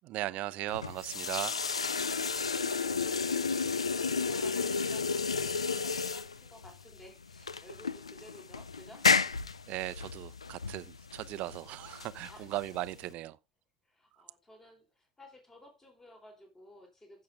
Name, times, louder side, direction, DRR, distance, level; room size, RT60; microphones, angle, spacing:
voice 1, 0.0-1.6 9.7-13.4, right 16 dB, 50° right, 0.7 m, -37 dB
sound 1, 0.7-13.1, left 5 dB, 90° left, 0.5 m, -32 dB
voice 2, 5.7-9.3 12.3-12.5 13.8-17.2, left 1 dB, 15° left, 4.3 m, -55 dB
15.5 x 6.5 x 3.6 m
figure-of-eight pair, 75°, 3 cm